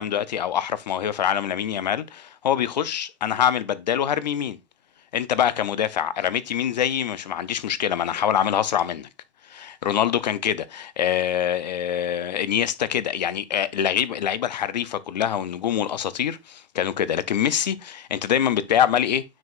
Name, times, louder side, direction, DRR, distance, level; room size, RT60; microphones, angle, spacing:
voice 1, 0.0-4.6 5.1-9.1 9.5-19.2, left 9 dB, 40° left, 0.5 m, -24 dB
9.6 x 4.5 x 2.4 m
hypercardioid pair, 170°, 34 cm